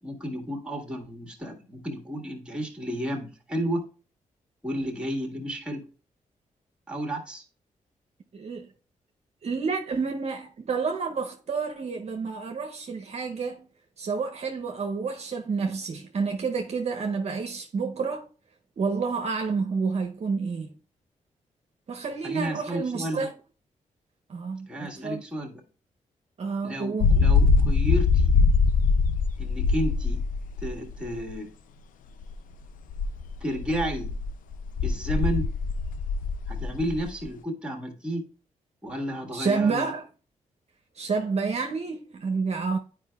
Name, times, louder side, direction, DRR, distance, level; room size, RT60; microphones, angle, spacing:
voice 1, 0.0-3.9 4.6-5.8 6.9-7.4 22.2-23.3 24.7-25.6 26.6-28.3 29.4-30.2 30.6-31.5 33.4-34.1 34.8-35.5 36.5-38.2 38.8-39.9, right 1 dB, 5° right, 1.6 m, -32 dB
voice 2, 8.3-8.7 9.4-13.7 14.0-18.3 18.8-20.8 21.9-23.3 24.3-25.2 26.4-27.1 39.3-40.0 41.0-42.8, right 5 dB, 55° right, 0.6 m, -29 dB
sound 1, 27.0-31.3 32.2-32.3 32.9-37.3, left 4 dB, 85° left, 0.4 m, -23 dB
9.3 x 4.8 x 2.3 m
cardioid pair, 75°, 14 cm